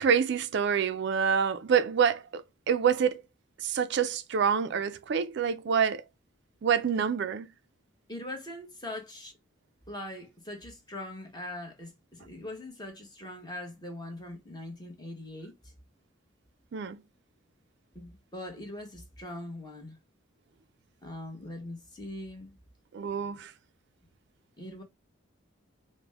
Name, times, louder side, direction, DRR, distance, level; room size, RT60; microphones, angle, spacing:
voice 1, 0.0-3.2 3.6-6.0 6.6-7.5 16.7-17.0 22.9-23.5, right 7 dB, 60° right, 0.4 m, -27 dB
voice 2, 8.1-9.3 9.9-15.7 17.9-20.0 21.0-22.6 24.6-24.8, left 1 dB, 20° left, 1.1 m, -41 dB
5.1 x 2.1 x 3.3 m
head